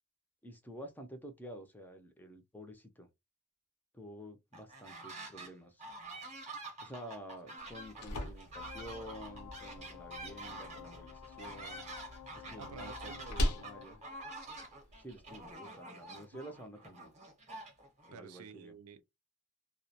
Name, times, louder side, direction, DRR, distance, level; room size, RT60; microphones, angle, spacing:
voice 1, 0.4-3.1 3.9-5.8 6.8-11.8 12.5-14.0 15.0-17.1 18.1-18.8, equal, 10° left, 0.4 m, -50 dB
sound 1, 4.5-5.5 5.8-18.1, right 2 dB, 30° right, 0.7 m, -48 dB
sound 2, 7.6-15.5, left 1 dB, 90° left, 0.7 m, -42 dB
sound 3, 8.5-13.9, left 10 dB, 70° left, 0.4 m, -52 dB
voice 2, 12.6-13.6 18.1-19.0, right 6 dB, 75° right, 0.4 m, -50 dB
2.2 x 2.0 x 2.7 m
head